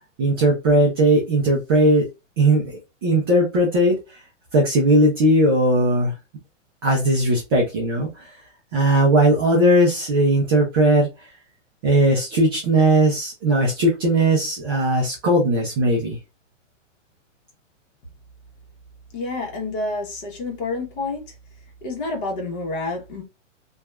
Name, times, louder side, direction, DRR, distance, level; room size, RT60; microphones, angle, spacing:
voice 1, 0.2-2.1 2.4-4.2 4.5-6.1 6.8-8.3 8.7-11.1 11.8-16.2, right 1 dB, 20° right, 0.3 m, -18 dB
voice 2, 19.1-21.3 21.8-23.2, left 3 dB, 45° left, 1.2 m, -28 dB
2.7 x 2.3 x 2.3 m
hypercardioid pair, 140°, 38 cm